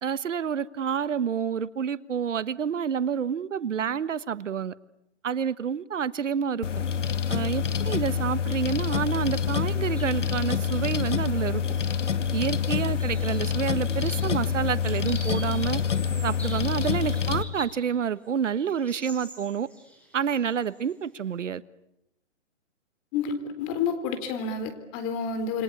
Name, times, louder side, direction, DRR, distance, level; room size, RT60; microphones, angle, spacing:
voice 1, 0.0-4.7 5.2-6.7 7.3-11.6 12.3-15.8 16.2-19.7 20.1-21.6, right 7 dB, 80° right, 1.3 m, -28 dB
sound 1, 6.6-17.4, left 7 dB, 80° left, 2.2 m, -27 dB
sound 2, 10.0-10.2 10.6-10.7 11.7-12.1 12.4-17.8 18.2-20.9, right 1 dB, 5° left, 6.8 m, -46 dB
voice 2, 23.1-25.6, left 5 dB, 25° left, 3.9 m, -29 dB
28.0 x 25.0 x 8.5 m
hypercardioid pair, 155°, 36 cm